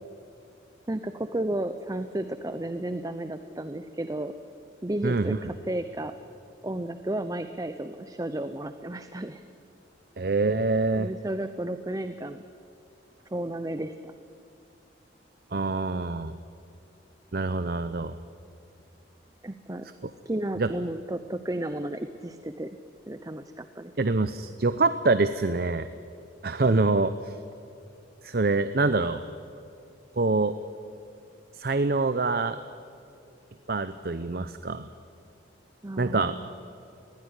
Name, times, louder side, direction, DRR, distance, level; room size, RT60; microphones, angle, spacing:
voice 1, 0.9-4.3 4.8-6.1 6.6-9.4 10.9-12.4 13.3-14.1 19.4-19.9 20.2-22.7 23.1-23.9 35.8-36.5, right 1 dB, 20° right, 10 dB, 0.6 m, -33 dB
voice 2, 5.0-5.4 10.2-11.1 15.5-16.3 17.3-18.2 20.6-20.7 24.0-25.9 26.4-27.4 28.2-29.2 30.2-30.6 31.5-32.6 33.7-34.9 36.0-36.3, right 3 dB, 55° right, 11 dB, 0.7 m, -25 dB
20.0 x 16.5 x 9.8 m, 2.7 s
head